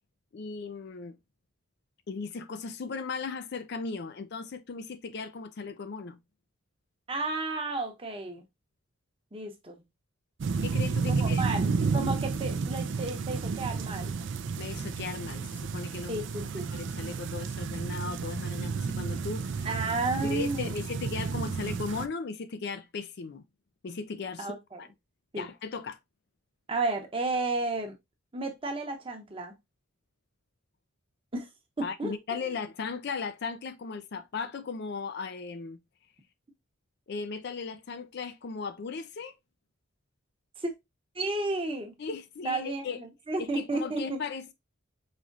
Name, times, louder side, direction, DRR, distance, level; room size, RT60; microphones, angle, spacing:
voice 1, 0.3-1.2 2.1-6.2 10.6-11.4 14.6-16.2 16.6-19.7 20.2-23.4 23.8-24.5 24.8-24.9 25.4-26.0 31.8-35.8 37.1-39.3 42.0-43.0 43.4-44.5, left 4 dB, 50° left, 0.4 m, -37 dB
voice 2, 7.1-8.4 9.3-9.8 11.1-14.1 16.1-16.7 19.6-20.7 24.4-24.8 25.3-25.5 26.7-27.9 28.3-29.5 31.3-31.5 31.8-32.1 40.6-40.7 41.1-41.9 42.4-44.2, right 2 dB, 25° right, 0.8 m, -32 dB
sound 1, 10.4-22.1, right 5 dB, 60° right, 0.4 m, -31 dB
4.9 x 3.0 x 2.5 m
head